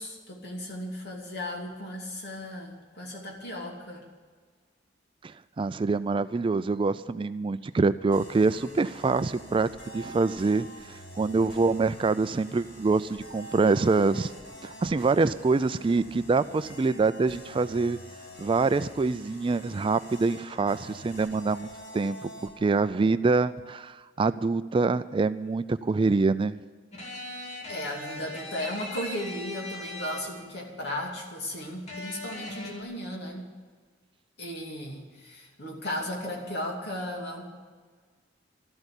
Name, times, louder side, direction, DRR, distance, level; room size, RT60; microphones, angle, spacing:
voice 1, 0.0-4.0 27.3-27.4 27.7-33.5 34.4-37.4, left 1 dB, 60° left, 0 dB, 2.8 m, -36 dB
voice 2, 5.2-9.7 9.9-14.3 14.6-18.0 18.4-26.6, right 3 dB, 25° right, 13 dB, 0.3 m, -25 dB
sound 1, 8.1-22.9, equal, 85° left, 5.5 m, -47 dB
sound 2, 26.9-30.6 31.9-32.8, left 1 dB, 35° left, 2.6 m, -39 dB
13.0 x 8.0 x 9.8 m, 1.5 s
head